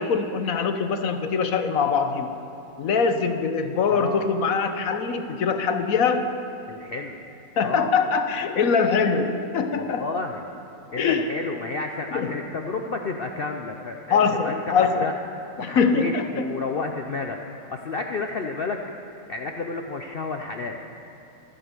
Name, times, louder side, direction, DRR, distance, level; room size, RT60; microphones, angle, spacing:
voice 1, 0.0-2.3 2.8-6.3 7.6-10.0 11.0-11.3 12.1-12.4 14.1-15.1 15.6-16.5, left 5 dB, 60° left, 8 dB, 1.1 m, -23 dB
voice 2, 3.9-4.3 6.7-7.2 7.6-7.9 9.7-10.4 10.9-15.1 15.6-18.8 19.3-20.8, left 3 dB, 85° left, 3 dB, 0.5 m, -31 dB
14.0 x 9.9 x 6.8 m, 3.0 s
omnidirectional pair, 1.9 m